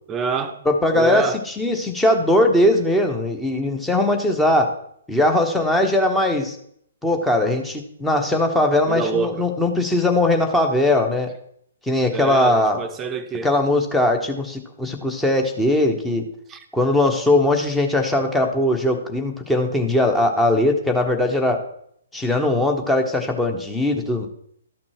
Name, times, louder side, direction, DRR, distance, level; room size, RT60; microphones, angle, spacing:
voice 1, 0.1-0.6 0.9-1.4 8.9-9.5 12.1-13.5 16.5-16.6, right 5 dB, 15° right, 0.9 m, -26 dB
voice 2, 0.6-4.7 5.1-6.6 7.0-11.3 11.9-12.8 13.4-16.3 16.7-21.6 22.1-24.3, left 1 dB, 5° left, 1.2 m, -20 dB
13.0 x 5.9 x 4.6 m
figure-of-eight pair, 125°, 0 cm